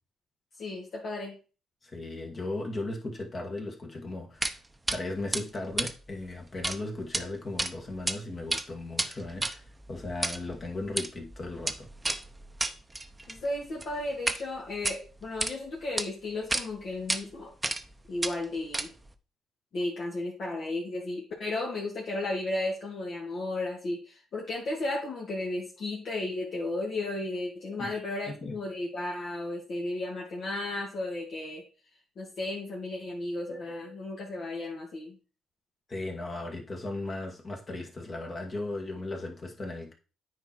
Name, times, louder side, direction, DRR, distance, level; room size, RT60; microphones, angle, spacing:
voice 1, 0.6-1.4 13.3-17.5 18.1-18.9 19.7-31.6 32.2-35.2, left 2 dB, 60° left, 2.4 m, -34 dB
voice 2, 1.8-4.6 4.9-9.6 9.9-11.9 27.8-28.0 28.4-28.6 35.9-39.9, left 2 dB, 40° left, 2.0 m, -36 dB
sound 1, 4.4-4.6 4.9-5.0 5.3-6.8 7.0-7.2 7.6-8.2 8.4-14.4 14.7-15.5 16.0-16.1 16.5-16.6 17.1-17.2 17.6-17.9 18.2-19.1, right 2 dB, 15° right, 0.8 m, -32 dB
9.0 x 4.6 x 4.5 m
cardioid pair, 90°, 0 cm